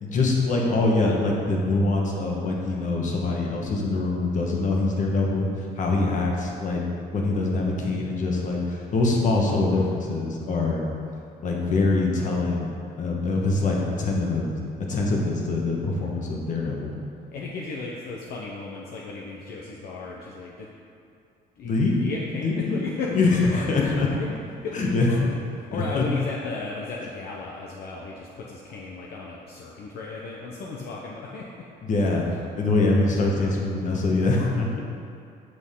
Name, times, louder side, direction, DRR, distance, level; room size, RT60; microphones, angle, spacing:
voice 1, 0.0-5.5 5.8-6.8 7.1-10.9 11.4-12.7 13.0-14.5 14.9-16.9 21.6-22.0 22.3-22.8 23.1-24.1 24.7-25.2 25.7-26.0 31.8-34.7, left 3 dB, 50° left, -1 dB, 1.4 m, -24 dB
voice 2, 17.3-20.7 21.6-21.7 22.0-24.3 24.6-25.1 25.6-31.5, left 3 dB, 65° left, -3 dB, 0.8 m, -35 dB
7.9 x 6.2 x 3.7 m, 2.5 s
cardioid pair, 110°, 17 cm